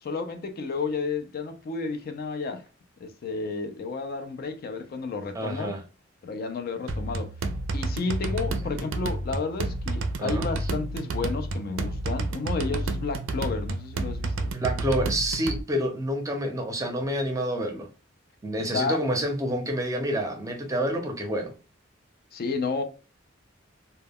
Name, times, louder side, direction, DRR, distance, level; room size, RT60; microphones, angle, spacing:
voice 1, 0.0-2.6 3.0-5.7 6.2-7.3 7.7-14.5 18.6-19.0 22.3-22.8, left 4 dB, 50° left, 0.4 m, -31 dB
voice 2, 5.3-5.8 8.2-8.4 10.2-10.5 14.5-17.9 18.4-21.5, equal, 15° right, 0.5 m, -28 dB
sound 1, 6.9-15.6, right 2 dB, 90° right, 0.4 m, -30 dB
2.2 x 2.1 x 3.4 m
head